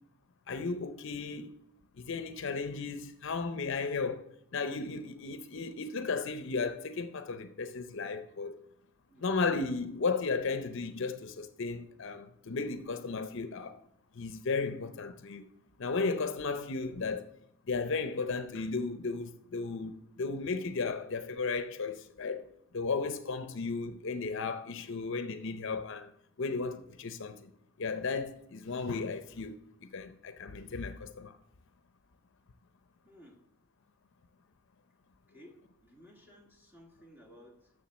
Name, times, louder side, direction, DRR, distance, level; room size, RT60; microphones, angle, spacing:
voice 1, 0.5-1.5 1.9-8.6 9.2-13.8 14.1-15.5 15.8-17.3 17.7-22.5 22.7-26.1 26.4-27.5 27.8-31.4, left 4 dB, 60° left, 0.6 m, -35 dB
voice 2, 33.0-33.4 35.3-35.5 35.8-37.7, equal, 10° right, 1.5 m, -56 dB
7.2 x 6.6 x 6.2 m
head